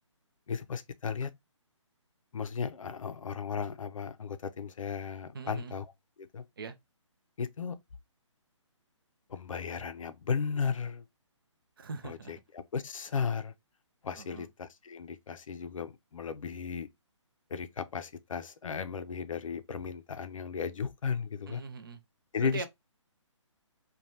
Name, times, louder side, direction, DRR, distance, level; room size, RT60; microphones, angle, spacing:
voice 1, 0.5-1.3 2.3-5.9 6.2-6.4 7.4-7.8 9.3-11.1 12.0-13.5 14.0-16.9 17.5-21.6 22.3-22.7, left 6 dB, 90° left, 0.5 m, -35 dB
voice 2, 5.3-5.7 6.6-6.8 11.8-12.3 14.2-14.5 21.5-22.0 22.5-22.7, right 4 dB, 45° right, 0.5 m, -41 dB
3.3 x 2.2 x 2.7 m
hypercardioid pair, 170°, 16 cm